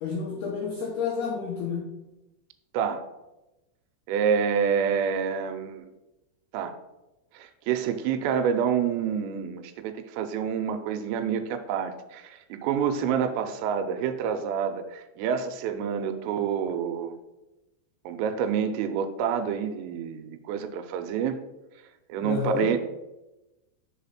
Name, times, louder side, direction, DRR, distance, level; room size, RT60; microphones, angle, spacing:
voice 1, 0.0-1.8 22.2-22.7, left 5 dB, 80° left, -1 dB, 2.2 m, -29 dB
voice 2, 4.1-5.9 6.5-6.7 7.3-17.2 18.1-21.4 22.1-22.8, right 7 dB, 85° right, 8 dB, 3.2 m, -28 dB
6.7 x 4.1 x 5.7 m, 0.99 s
omnidirectional pair, 5.8 m